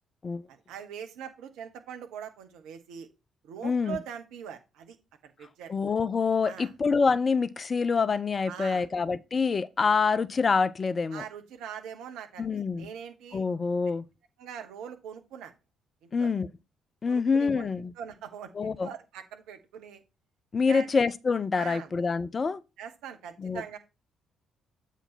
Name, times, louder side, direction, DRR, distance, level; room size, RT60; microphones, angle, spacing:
voice 1, 0.5-3.1 3.4-5.0 5.2-5.7 6.4-6.7 8.4-8.9 11.1-13.4 14.4-15.5 16.0-16.3 17.1-17.7 18.0-20.0 20.6-20.9 21.5-21.9 22.8-23.8, right 8 dB, 65° right, 1.0 m, -42 dB
voice 2, 3.6-4.0 5.7-11.2 12.4-12.9 13.3-14.0 16.1-16.5 17.0-17.9 18.6-18.9 20.5-22.6 23.4-23.8, left 5 dB, 35° left, 0.5 m, -26 dB
8.0 x 4.0 x 4.2 m
figure-of-eight pair, 40°, 0 cm